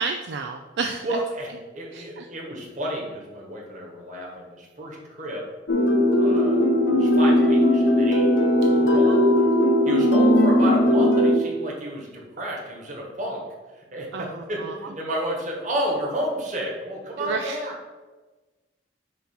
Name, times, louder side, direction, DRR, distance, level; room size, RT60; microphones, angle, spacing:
voice 1, 0.0-1.1 1.9-2.2 8.9-9.2 14.1-14.7 17.2-17.6, right 4 dB, 60° right, 5 dB, 0.4 m, -31 dB
voice 2, 1.0-5.4 6.1-8.3 8.7-9.3 9.8-13.4 13.7-17.7, equal, 40° right, -2 dB, 1.5 m, -31 dB
sound 1, 5.7-11.4, left 1 dB, 75° left, 0.8 m, -18 dB
6.9 x 2.9 x 5.9 m, 1.2 s
head